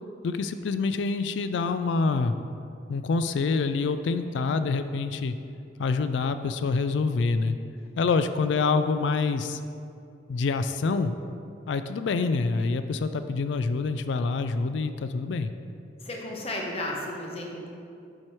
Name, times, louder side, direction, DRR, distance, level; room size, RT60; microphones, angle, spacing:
voice 1, 0.2-2.4 2.9-5.4 5.8-7.6 8.0-9.6 10.3-11.1 11.7-15.5, left 4 dB, 85° left, 10 dB, 0.3 m, -26 dB
voice 2, 16.0-17.7, left 1 dB, 35° left, -1 dB, 1.0 m, -33 dB
7.4 x 4.7 x 4.6 m, 2.5 s
head